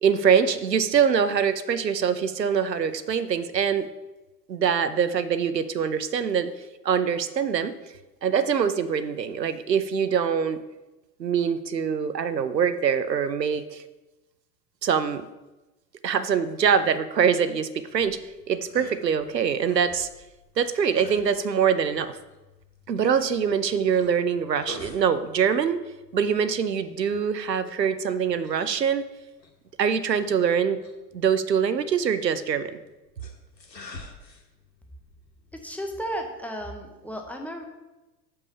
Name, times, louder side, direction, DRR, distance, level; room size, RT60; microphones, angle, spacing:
voice 1, 0.0-3.9 4.5-6.5 6.8-7.7 8.2-10.6 11.2-13.8 14.8-15.2 16.0-20.1 20.6-22.2 22.9-25.8 26.1-29.0 29.8-30.8 31.1-32.8, right 7 dB, 80° right, 12 dB, 0.7 m, -24 dB
sound 1, 17.9-36.6, left 3 dB, 85° left, 1.3 m, -49 dB
voice 2, 35.6-37.6, equal, 5° left, 2 dB, 0.6 m, -34 dB
6.8 x 5.5 x 5.6 m, 1.0 s
figure-of-eight pair, 85°, 49 cm